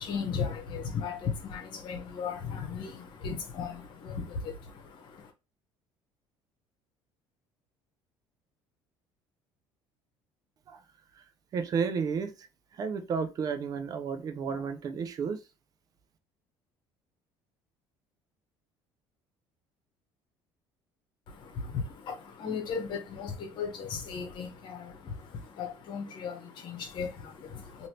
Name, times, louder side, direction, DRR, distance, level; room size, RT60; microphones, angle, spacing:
voice 1, 0.0-5.3 21.3-27.9, left 6 dB, 60° left, 0.9 m, -36 dB
voice 2, 11.5-12.3 12.8-15.4, right 6 dB, 45° right, 0.5 m, -32 dB
3.2 x 2.6 x 2.7 m
cardioid pair, 120°, 9 cm